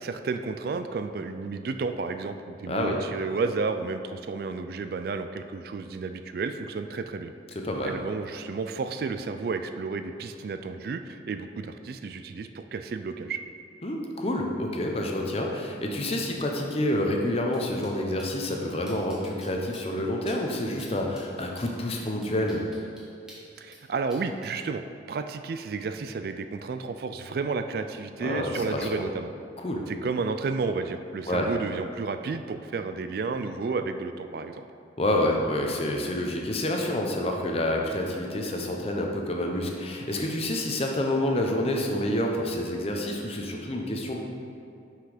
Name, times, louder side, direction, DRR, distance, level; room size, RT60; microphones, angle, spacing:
voice 1, 0.0-7.3 7.8-13.4 23.6-24.8 25.1-29.3 29.9-34.7, right 4 dB, 55° right, 8 dB, 0.3 m, -32 dB
voice 2, 2.7-3.0 7.5-7.9 13.8-22.6 28.2-29.0 29.6-29.8 31.3-31.5 35.0-44.2, left 1 dB, 30° left, 1 dB, 0.7 m, -28 dB
sound 1, 17.5-17.6 17.8-17.9 18.2-18.5 18.9-19.5 19.7-19.8 20.3-20.4 20.7-20.9 21.1-23.8 24.1-24.5, equal, 5° right, 1.3 m, -49 dB
6.1 x 5.6 x 4.9 m, 2.5 s
head